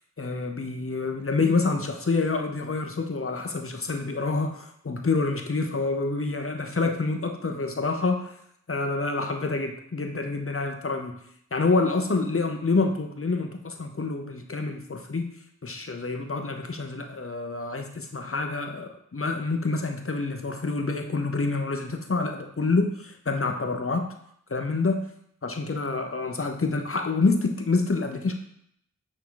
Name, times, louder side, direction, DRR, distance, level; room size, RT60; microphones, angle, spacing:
voice 1, 0.2-8.3 8.7-11.2 11.5-15.3 15.6-24.1 24.5-25.1 25.4-28.3, left 3 dB, 45° left, 5 dB, 0.8 m, -27 dB
8.6 x 3.8 x 3.9 m, 0.71 s
wide cardioid pair, 50°, 31 cm